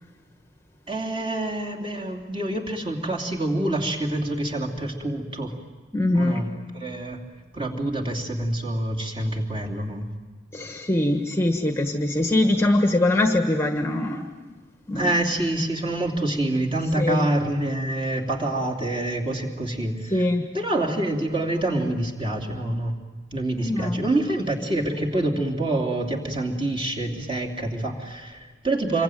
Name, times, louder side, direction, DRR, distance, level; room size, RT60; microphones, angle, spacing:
voice 1, 0.9-5.5 6.1-6.5 6.7-7.2 7.5-10.1 14.9-20.2 20.5-23.0 23.3-29.0, right 1 dB, 25° right, 0 dB, 3.0 m, -26 dB
voice 2, 5.9-6.5 9.2-9.3 10.5-14.3 14.9-15.1 17.0-17.3 20.1-20.5 23.6-24.1, left 1 dB, 15° left, 4 dB, 1.3 m, -23 dB
27.0 x 23.5 x 9.2 m, 1.3 s
head